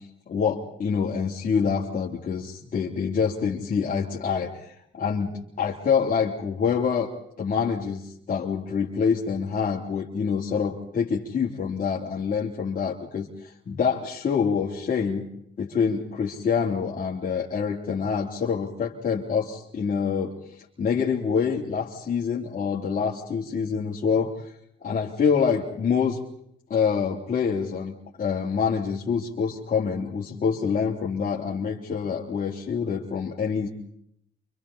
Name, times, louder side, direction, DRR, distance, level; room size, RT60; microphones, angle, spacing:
voice 1, 0.3-5.3 5.6-7.1 7.4-15.3 15.6-24.5 24.8-26.2 26.7-33.7, left 6 dB, 45° left, -4 dB, 3.3 m, -26 dB
28.5 x 26.0 x 4.3 m, 0.71 s
cardioid pair, 90°, 20 cm